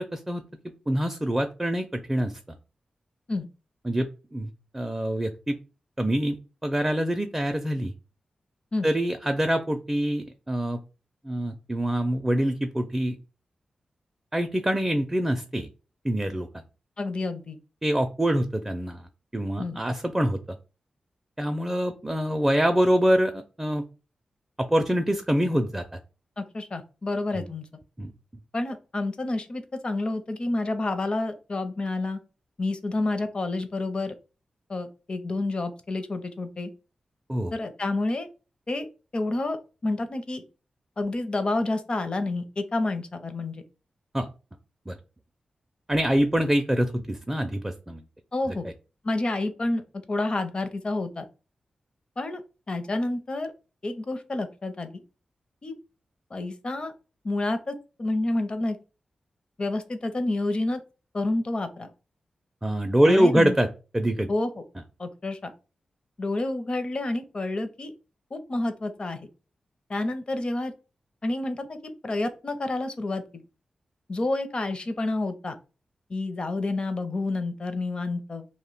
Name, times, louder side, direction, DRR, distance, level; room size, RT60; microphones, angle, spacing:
voice 1, 0.0-2.3 3.8-5.6 6.0-6.4 6.6-7.9 8.8-10.8 11.2-13.2 14.3-15.7 16.0-16.6 17.8-19.1 19.3-20.4 21.4-23.8 24.6-26.0 27.3-27.4 28.0-28.1 37.3-37.5 44.1-44.3 44.9-45.0 45.9-48.0 62.6-63.7 63.9-64.3, equal, 15° right, 7 dB, 0.4 m, -25 dB
voice 2, 17.0-17.6 19.6-19.8 26.4-27.6 28.5-32.2 32.6-34.1 34.7-36.7 37.5-38.3 38.7-38.9 39.1-40.4 41.0-43.6 48.3-48.7 49.0-49.8 50.1-51.2 52.2-52.4 52.7-53.5 53.8-55.0 55.6-55.8 56.3-56.9 57.2-57.7 58.0-58.8 59.6-60.8 61.1-61.9 63.0-63.5 64.3-64.5 65.0-65.5 66.2-67.9 68.3-69.3 69.9-70.7 71.2-71.8 72.0-73.4 74.1-75.6 76.1-78.5, left 2 dB, 45° left, 8 dB, 0.6 m, -29 dB
2.4 x 2.1 x 3.9 m, 0.33 s
cardioid pair, 45°, 2 cm